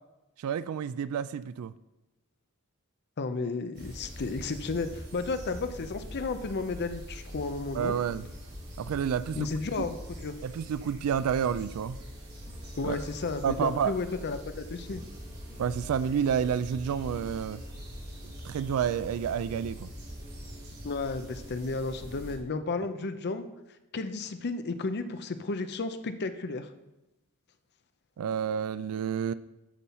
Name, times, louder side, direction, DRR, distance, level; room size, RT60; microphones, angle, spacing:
voice 1, 0.4-1.7 7.7-8.3 8.8-9.5 9.8-9.9 10.4-12.0 12.8-13.0 13.4-13.9 15.6-17.6 18.2-19.9 28.2-29.3, right 8 dB, 70° right, 0.3 m, -29 dB
voice 2, 3.2-7.9 9.3-10.3 12.8-15.0 20.8-23.5 23.9-26.7, left 3 dB, 50° left, 0.6 m, -33 dB
sound 1, 3.7-22.4, equal, 50° right, 3.5 m, -43 dB
10.0 x 5.5 x 4.2 m
head